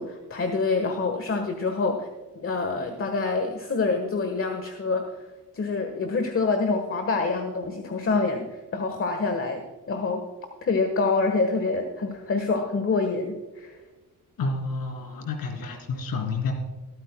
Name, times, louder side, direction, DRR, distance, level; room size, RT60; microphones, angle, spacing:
voice 1, 0.0-2.1 2.3-5.1 5.5-9.6 9.9-10.2 10.6-13.8, left 3 dB, 35° left, 6 dB, 1.4 m, -26 dB
voice 2, 14.4-16.5, left 4 dB, 75° left, 4 dB, 3.0 m, -29 dB
24.5 x 9.0 x 2.3 m, 1.2 s
cardioid pair, 95°, 36 cm